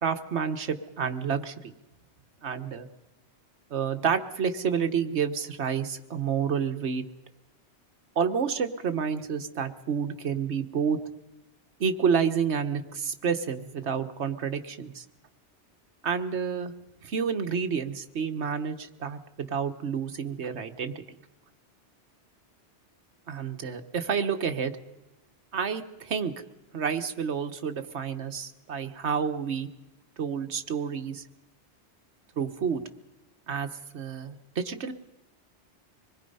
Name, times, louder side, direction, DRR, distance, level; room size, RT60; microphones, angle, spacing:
voice 1, 0.0-1.7 2.4-2.9 3.7-7.0 8.2-11.0 11.8-15.0 16.0-16.7 17.0-21.0 23.3-24.7 25.5-26.3 26.7-29.7 30.2-31.2 32.4-32.8 33.5-34.9, right 6 dB, 75° right, 7 dB, 1.4 m, -29 dB
25.0 x 21.0 x 5.5 m, 0.97 s
omnidirectional pair, 1.2 m